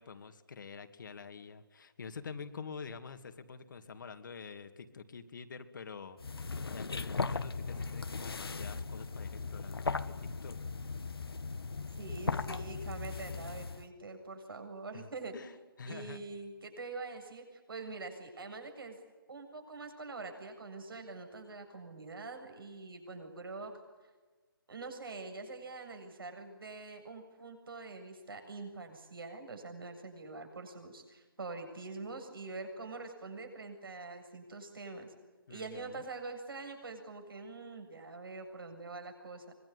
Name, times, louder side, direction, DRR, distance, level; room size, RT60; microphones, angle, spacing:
voice 1, 0.0-6.2 6.6-10.6 14.9-16.2 35.5-36.0, left 5 dB, 55° left, 8 dB, 2.4 m, -47 dB
sound 1, 6.2-13.9, left 4 dB, 80° left, 1.5 m, -38 dB
voice 2, 12.0-15.3 15.9-19.0 19.3-23.7 24.7-35.1 35.5-39.5, right 3 dB, 70° right, 6 dB, 7.7 m, -45 dB
25.0 x 22.0 x 9.8 m, 1.3 s
figure-of-eight pair, 155°, 12 cm